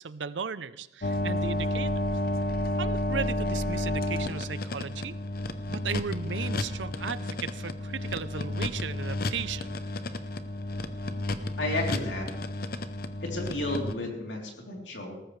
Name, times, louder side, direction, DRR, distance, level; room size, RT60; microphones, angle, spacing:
voice 1, 0.0-2.0 2.8-5.2 5.7-9.7, right 6 dB, 85° right, 16 dB, 0.6 m, -36 dB
sound 1, 1.0-13.9, left 1 dB, 55° left, 0.8 m, -31 dB
voice 2, 11.6-12.3 13.2-15.2, left 2 dB, 80° left, 0 dB, 3.5 m, -32 dB
19.0 x 14.5 x 3.3 m, 0.97 s
head